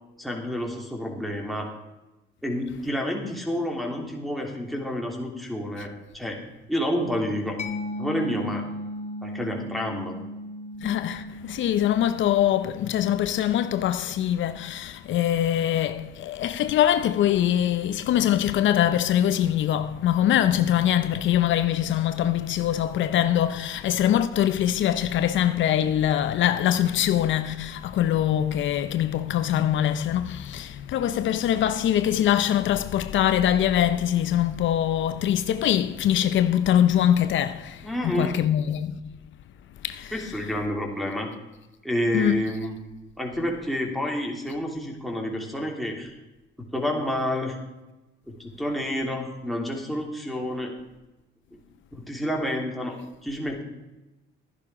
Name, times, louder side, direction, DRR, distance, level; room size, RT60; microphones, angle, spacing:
voice 1, 0.2-1.7 2.4-6.4 6.7-7.6 8.0-8.7 9.2-10.1 37.8-38.4 40.1-41.3 41.8-42.7 43.2-46.1 46.6-47.6 48.3-50.7 51.5-51.6 51.9-53.6, equal, ahead, 3.1 m, -29 dB
Mallet percussion, 7.6-15.0, left 1 dB, 35° left, 1.6 m, -37 dB
voice 2, 10.8-39.2 39.8-40.3 42.1-42.4, left 11 dB, 70° left, 0.6 m, -23 dB
13.0 x 10.5 x 4.9 m
cardioid pair, 90°, 20 cm